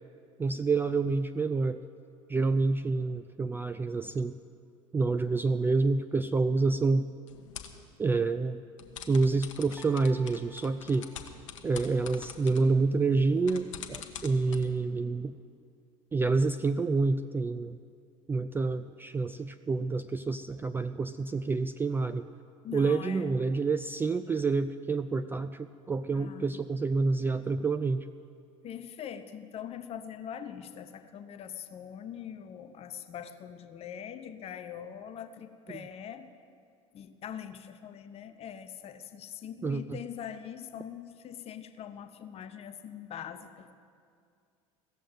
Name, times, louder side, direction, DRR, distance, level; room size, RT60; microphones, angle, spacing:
voice 1, 0.4-1.8 2.3-4.3 4.9-7.1 8.0-8.6 9.1-11.1 11.6-15.3 16.1-17.8 18.3-22.3 22.7-28.1 39.6-40.0, right 3 dB, 10° right, 10 dB, 0.3 m, -28 dB
sound 1, 7.3-7.8 8.8-14.6, left 8 dB, 65° left, 1.0 m, -46 dB
Piano, 9.8-12.3, right 3 dB, 5° left, 1.1 m, -57 dB
voice 2, 22.6-23.4 26.1-26.6 28.6-36.3 36.9-43.7, left 9 dB, 35° left, 8 dB, 0.9 m, -43 dB
16.0 x 7.4 x 9.1 m, 2.3 s
figure-of-eight pair, 70°, 17 cm